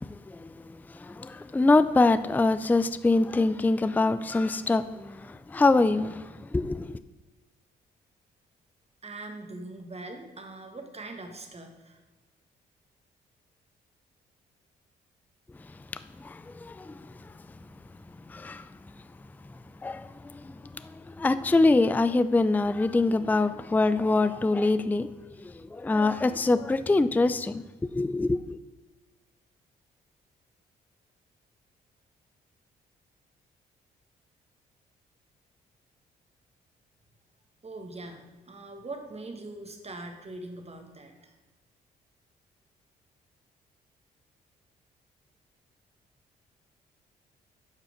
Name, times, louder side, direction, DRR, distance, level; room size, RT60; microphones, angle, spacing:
voice 1, 1.0-6.2 6.5-7.0 16.2-16.9 18.3-18.6 19.8-20.1 21.2-25.1 25.4-27.6 27.9-28.6, left 3 dB, 10° left, 0.4 m, -24 dB
voice 2, 9.0-12.0 37.6-41.3, right 2 dB, 35° right, 1.7 m, -42 dB
9.1 x 5.7 x 5.1 m
hypercardioid pair, 45°, 19 cm